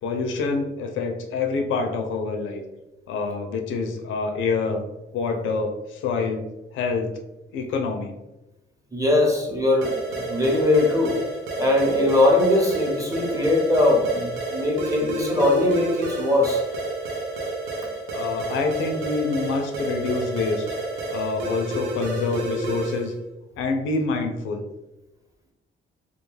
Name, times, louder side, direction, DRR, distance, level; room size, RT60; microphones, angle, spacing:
voice 1, 0.0-2.6 3.1-4.8 5.1-6.5 6.7-7.1 7.5-8.2 18.1-20.7 21.1-23.1 23.6-24.6, left 4 dB, 80° left, 5 dB, 0.4 m, -26 dB
voice 2, 8.9-9.9 10.2-11.2 11.6-16.6, left 1 dB, 15° right, -2 dB, 0.8 m, -20 dB
sound 1, 9.8-23.1, right 2 dB, 85° right, 0.6 m, -31 dB
2.3 x 2.2 x 3.1 m, 1.0 s
cardioid pair, 90°, 20 cm